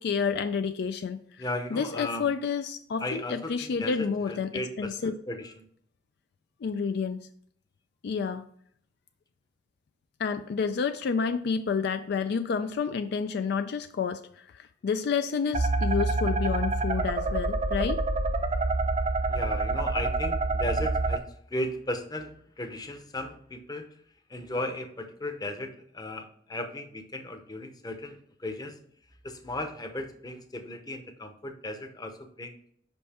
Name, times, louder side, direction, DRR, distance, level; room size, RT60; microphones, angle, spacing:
voice 1, 0.0-1.4 1.7-5.1 6.6-7.3 8.0-8.4 10.2-18.0, left 5 dB, 60° left, 9 dB, 0.3 m, -29 dB
voice 2, 1.4-2.3 3.0-5.7 19.3-23.9 24.3-28.8 29.2-32.6, left 1 dB, 20° left, 6 dB, 0.8 m, -36 dB
sound 1, 15.5-21.2, right 2 dB, 35° right, 0.5 m, -27 dB
5.4 x 5.3 x 4.2 m, 0.64 s
head